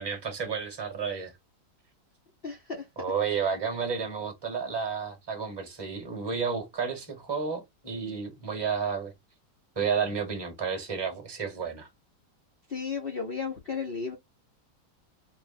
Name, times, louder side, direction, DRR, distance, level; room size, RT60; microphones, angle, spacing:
voice 1, 0.0-1.3 3.0-9.1 9.7-11.9, right 6 dB, 15° right, 1.1 m, -31 dB
voice 2, 2.4-2.8 12.7-14.2, left 5 dB, 60° left, 0.6 m, -34 dB
4.2 x 2.1 x 4.1 m
omnidirectional pair, 1.9 m